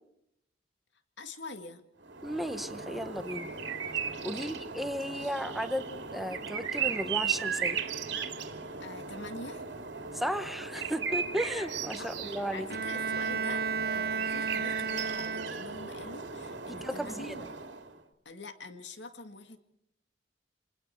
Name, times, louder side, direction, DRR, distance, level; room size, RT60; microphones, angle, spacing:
voice 1, 1.2-1.8 4.2-4.6 8.8-9.6 12.0-13.7 13.9-17.5 18.3-19.6, left 3 dB, 75° left, 8 dB, 2.1 m, -45 dB
sound 1, 2.0-18.0, right 6 dB, 80° right, 2.6 m, -37 dB
voice 2, 2.2-3.5 4.2-7.8 10.1-12.7 16.7-17.3, equal, ahead, 9 dB, 1.2 m, -35 dB
Bowed string instrument, 12.7-15.9, right 5 dB, 55° right, 1.2 m, -33 dB
27.5 x 20.5 x 4.6 m, 0.77 s
head